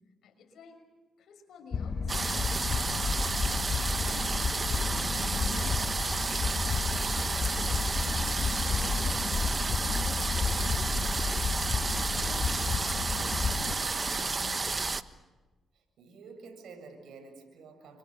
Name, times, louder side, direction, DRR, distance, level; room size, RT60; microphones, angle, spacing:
voice 1, 0.2-0.9 1.2-4.6 5.1-6.5 7.2-11.2 12.1-14.8, left 4 dB, 70° left, 6 dB, 6.0 m, -50 dB
sound 1, 1.7-13.7, left 5 dB, 50° left, 1.7 m, -32 dB
sound 2, 2.1-15.0, right 4 dB, 30° right, 1.2 m, -31 dB
voice 2, 15.7-18.0, right 4 dB, 75° right, 5 dB, 7.7 m, -49 dB
29.5 x 26.0 x 7.0 m, 1.2 s
cardioid pair, 75°, 0 cm